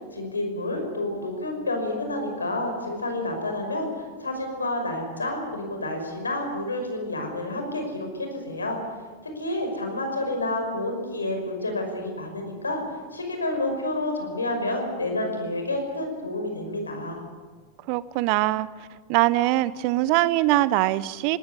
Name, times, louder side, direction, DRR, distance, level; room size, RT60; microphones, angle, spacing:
voice 1, 0.1-8.8 9.2-12.8 13.1-17.2, left 1 dB, 85° left, 4 dB, 5.6 m, -29 dB
voice 2, 17.9-18.7 19.1-21.4, right 16 dB, 50° right, 18 dB, 0.8 m, -22 dB
19.5 x 19.0 x 9.7 m, 1.5 s
figure-of-eight pair, 90°, 0 cm